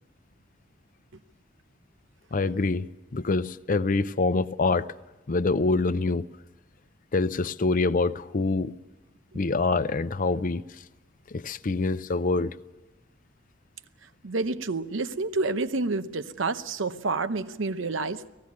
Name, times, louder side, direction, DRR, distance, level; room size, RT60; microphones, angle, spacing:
voice 1, 2.3-4.9 5.3-6.3 7.1-8.7 9.3-10.6 11.3-12.6, left 3 dB, 45° left, 0.6 m, -25 dB
voice 2, 14.2-18.3, right 3 dB, 85° right, 0.8 m, -29 dB
19.0 x 15.5 x 9.4 m
head